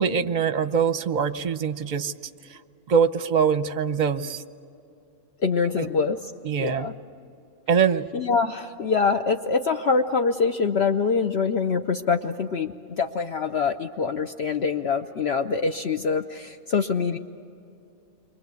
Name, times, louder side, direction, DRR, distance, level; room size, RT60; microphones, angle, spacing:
voice 1, 0.0-2.1 2.5-2.6 2.9-4.4 5.8-5.9 6.4-6.9 7.7-8.1, right 6 dB, 45° right, 11 dB, 0.8 m, -23 dB
voice 2, 5.4-6.2 6.6-6.9 8.1-17.2, left 5 dB, 55° left, 5 dB, 0.9 m, -24 dB
29.0 x 23.5 x 8.2 m, 2.7 s
omnidirectional pair, 1.4 m